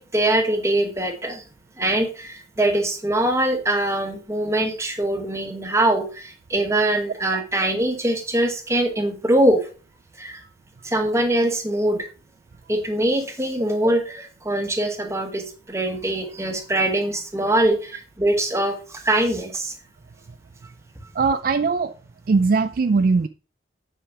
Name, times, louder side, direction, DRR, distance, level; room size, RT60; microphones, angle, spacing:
voice 1, 0.0-1.4 1.8-9.7 10.2-10.4 10.8-12.1 12.7-19.8 21.0-21.1, right 1 dB, 15° right, 1.2 m, -23 dB
voice 2, 21.1-21.9 22.3-23.3, right 4 dB, 50° right, 0.3 m, -20 dB
8.8 x 5.0 x 4.7 m
head